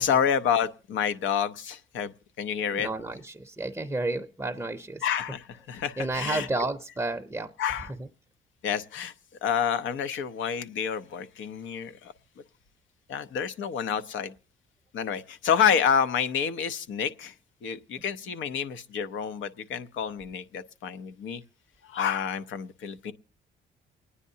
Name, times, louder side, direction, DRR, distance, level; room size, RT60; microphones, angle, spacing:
voice 1, 0.0-2.9 5.0-6.5 7.6-7.9 8.6-9.1 9.4-12.1 13.1-14.3 14.9-17.3 17.6-21.4 21.8-23.1, left 7 dB, 75° left, 10 dB, 0.8 m, -28 dB
voice 2, 2.7-5.0 6.0-7.5 8.0-8.1, right 2 dB, 10° right, 6 dB, 0.6 m, -31 dB
29.0 x 9.8 x 2.7 m, 0.38 s
cardioid pair, 90°, 20 cm